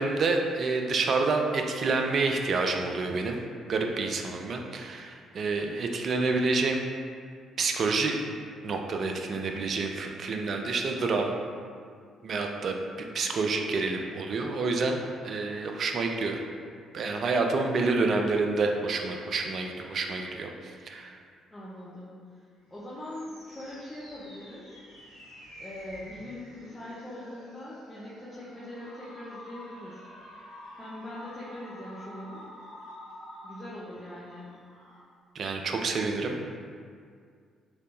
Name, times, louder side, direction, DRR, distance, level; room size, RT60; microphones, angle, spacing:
voice 1, 0.0-6.8 7.6-8.2 8.6-11.3 12.2-16.5 16.9-21.2 35.4-36.4, right 3 dB, 45° right, 3 dB, 0.3 m, -28 dB
voice 2, 21.5-22.4 22.7-24.7 25.6-30.0 30.8-32.5 33.4-34.6, left 1 dB, 20° left, -8 dB, 0.6 m, -42 dB
sound 1, 22.6-35.0, equal, 85° left, 0.7 m, -49 dB
3.3 x 3.1 x 2.5 m, 2.1 s
figure-of-eight pair, 45°, 0 cm